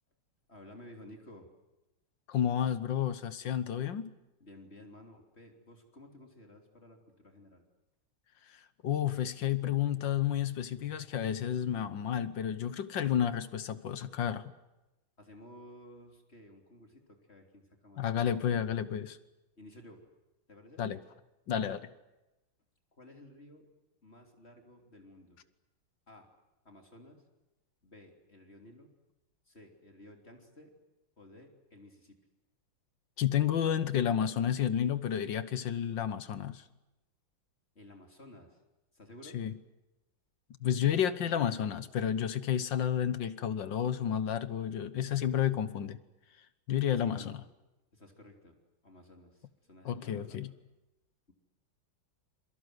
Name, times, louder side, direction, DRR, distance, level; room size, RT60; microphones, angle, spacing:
voice 1, 0.5-1.5 4.4-7.6 15.2-18.0 19.6-20.0 20.5-20.8 22.9-23.7 24.0-25.4 26.1-26.3 26.7-27.2 27.8-28.9 29.5-30.7 31.2-32.2 37.8-38.6 38.9-39.4 47.0-47.4 47.9-48.6 48.8-50.4, left 1 dB, 30° left, 3 dB, 3.6 m, -54 dB
voice 2, 2.3-4.1 8.5-14.5 18.0-19.2 20.8-21.0 21.5-21.9 33.2-36.6 39.3-39.5 40.6-46.0 46.7-47.4 49.8-50.5, left 9 dB, 65° left, 14 dB, 1.7 m, -31 dB
27.5 x 23.5 x 8.0 m, 0.98 s
omnidirectional pair, 2.2 m